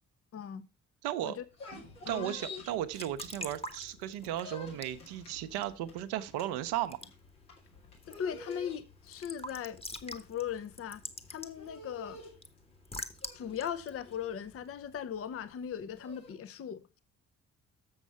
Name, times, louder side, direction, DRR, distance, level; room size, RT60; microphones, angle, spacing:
voice 1, 0.3-0.7 1.2-1.4 2.0-2.4 8.0-11.0 11.3-12.2 13.3-17.0, left 8 dB, 30° left, 0.7 m, -39 dB
voice 2, 1.0-1.4 2.1-7.1, right 12 dB, 60° right, 0.9 m, -35 dB
sound 1, 1.4-3.7 4.0-16.3, left 2 dB, 80° left, 2.2 m, -50 dB
Raindrop / Drip / Trickle dribble, 2.7-15.2, left 1 dB, 15° left, 1.2 m, -48 dB
7.1 x 6.5 x 5.6 m
figure-of-eight pair, 40°, 44 cm